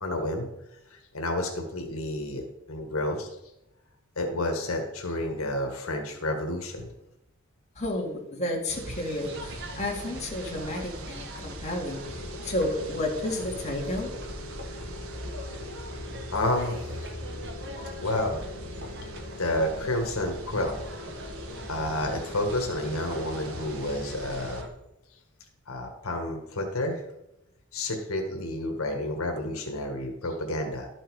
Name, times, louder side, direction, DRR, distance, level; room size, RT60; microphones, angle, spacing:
voice 1, 0.0-0.5 0.9-3.3 4.1-6.9 16.3-17.1 18.0-18.4 19.4-20.8 21.7-24.6 25.7-27.0 27.7-30.9, left 1 dB, 85° left, 2 dB, 1.6 m, -30 dB
voice 2, 7.8-14.1 18.8-18.9, left 1 dB, 30° left, -2 dB, 2.2 m, -32 dB
sound 1, 8.7-24.6, right 2 dB, 80° right, 1.1 m, -45 dB
sound 2, 9.2-24.7, left 1 dB, 55° right, 1.6 m, -40 dB
sound 3, 12.0-23.8, left 2 dB, 60° left, 0.8 m, -46 dB
12.0 x 6.4 x 4.8 m, 0.87 s
head